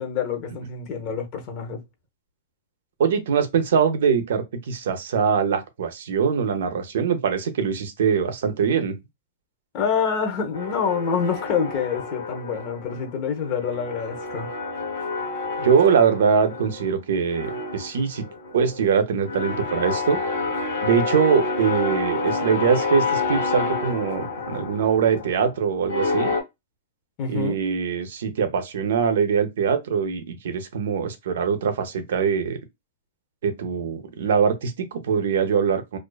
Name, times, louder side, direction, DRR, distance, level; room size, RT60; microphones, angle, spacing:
voice 1, 0.0-1.8 9.7-14.5 27.2-27.6, left 6 dB, 40° left, 0.8 m, -27 dB
voice 2, 3.0-9.0 15.6-18.3 18.5-20.2 20.8-26.3 27.3-32.6 33.4-36.0, right 6 dB, 75° right, 0.6 m, -22 dB
sound 1, 10.5-13.1 13.3-17.0 17.3-26.4, left 3 dB, 75° left, 1.2 m, -29 dB
2.4 x 2.3 x 2.3 m
hypercardioid pair, 140°, 0 cm